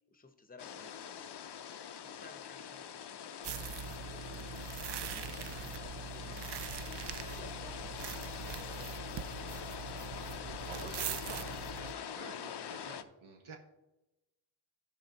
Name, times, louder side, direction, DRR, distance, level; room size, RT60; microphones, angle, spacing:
voice 1, 0.1-1.6 2.0-4.7 5.3-6.6 7.2-9.4, left 3 dB, 20° left, 9 dB, 0.9 m, -57 dB
sound 1, 0.6-13.0, left 8 dB, 55° left, 0.6 m, -44 dB
sound 2, 3.4-11.9, right 7 dB, 60° right, 0.5 m, -42 dB
voice 2, 10.6-13.6, right 4 dB, 80° right, 1 dB, 1.4 m, -49 dB
15.0 x 5.2 x 4.0 m, 0.98 s
wide cardioid pair, 135°, 49 cm